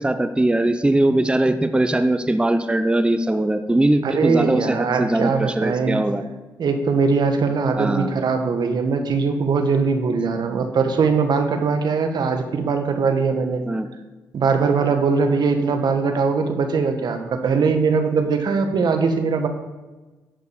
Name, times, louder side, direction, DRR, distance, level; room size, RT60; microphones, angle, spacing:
voice 1, 0.0-6.2 7.7-8.1 13.7-13.9, right 1 dB, 10° right, 8 dB, 0.7 m, -20 dB
voice 2, 4.0-6.0 6.6-13.6 14.3-19.5, right 5 dB, 60° right, 6 dB, 1.4 m, -21 dB
11.0 x 5.3 x 7.0 m, 1.2 s
supercardioid pair, 65°, 8 cm